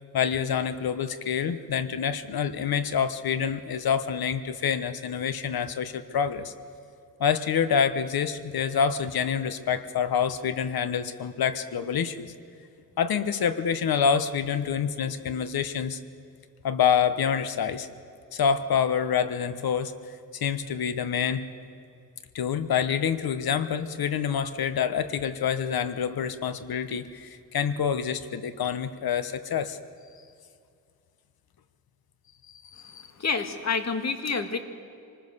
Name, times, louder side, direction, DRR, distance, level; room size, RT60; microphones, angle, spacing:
voice 1, 0.1-6.5 7.2-12.3 13.0-16.0 16.6-17.9 18.3-20.0 20.3-21.5 22.3-29.8 32.5-33.0, left 7 dB, 85° left, 11 dB, 1.2 m, -27 dB
voice 2, 33.2-34.6, left 5 dB, 50° left, 6 dB, 1.8 m, -28 dB
25.5 x 20.0 x 6.8 m, 2.4 s
wide cardioid pair, 130°, 35 cm